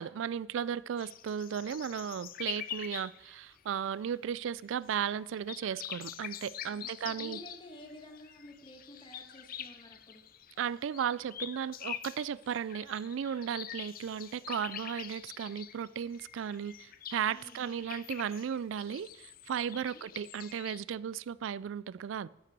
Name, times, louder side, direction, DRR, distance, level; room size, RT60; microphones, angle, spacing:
voice 1, 0.0-7.4 10.6-22.3, right 8 dB, 65° right, 0.3 m, -35 dB
sound 1, 1.0-3.9 4.3-4.5 4.9-5.0 5.2-20.8, left 10 dB, 45° left, 0.5 m, -45 dB
voice 2, 6.6-10.2 17.3-17.8 19.9-20.0, equal, 25° left, 1.6 m, -51 dB
14.0 x 5.9 x 6.1 m
head